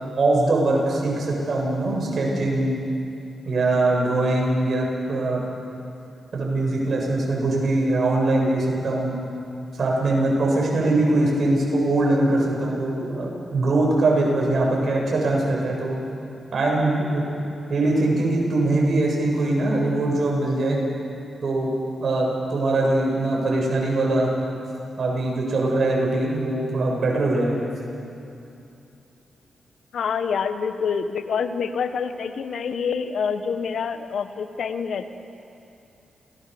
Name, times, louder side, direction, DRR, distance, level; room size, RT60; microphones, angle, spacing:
voice 1, 0.2-2.8 3.4-5.4 6.3-9.1 9.8-16.0 16.5-17.2 17.7-20.8 21.4-21.7 22.0-24.3 25.0-27.7, right 2 dB, 60° right, -2 dB, 8.0 m, -22 dB
voice 2, 29.9-35.1, left 6 dB, 75° left, 9 dB, 1.3 m, -26 dB
29.0 x 19.5 x 7.1 m, 2.8 s
cardioid pair, 60°, 0 cm